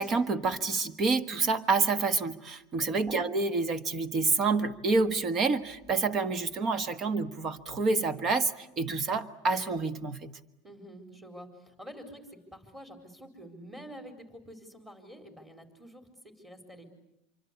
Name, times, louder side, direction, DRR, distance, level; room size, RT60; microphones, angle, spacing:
voice 1, 0.0-10.3, right 4 dB, 30° right, 1.4 m, -28 dB
voice 2, 10.6-16.9, equal, 10° right, 4.4 m, -48 dB
26.0 x 24.5 x 8.4 m
supercardioid pair, 140°, 0 cm